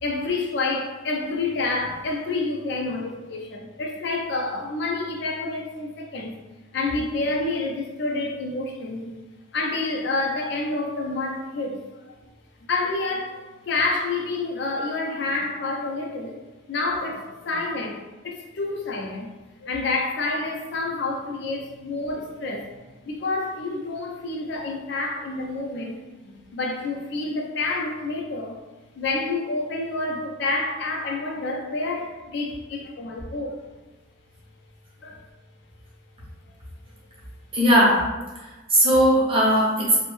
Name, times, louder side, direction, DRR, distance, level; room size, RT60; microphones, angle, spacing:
voice 1, 0.0-6.4 6.7-9.2 9.5-12.1 12.7-13.4 13.7-16.4 16.7-19.3 19.6-22.7 23.1-28.6 28.9-33.6 35.0-35.2, left 3 dB, 55° left, 0 dB, 0.4 m, -28 dB
voice 2, 37.5-38.0 38.4-40.0, equal, 25° right, -5 dB, 0.6 m, -18 dB
2.5 x 2.0 x 3.0 m, 1.2 s
head